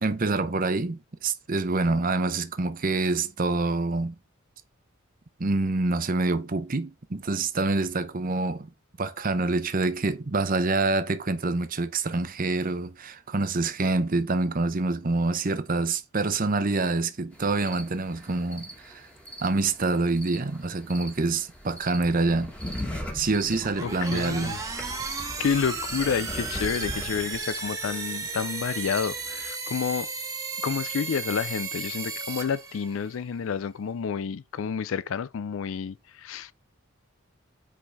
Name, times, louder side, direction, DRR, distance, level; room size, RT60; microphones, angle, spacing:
voice 1, 0.0-4.1 5.4-8.7 9.0-19.1 19.4-22.5 23.1-24.5, right 3 dB, 40° right, 0.8 m, -26 dB
sound 1, 17.3-29.5, equal, 5° left, 1.7 m, -40 dB
sound 2, 23.5-33.2, right 4 dB, 15° right, 1.2 m, -34 dB
voice 2, 23.8-24.6 25.4-30.1 30.6-36.5, left 6 dB, 70° left, 0.4 m, -29 dB
8.7 x 4.8 x 3.5 m
head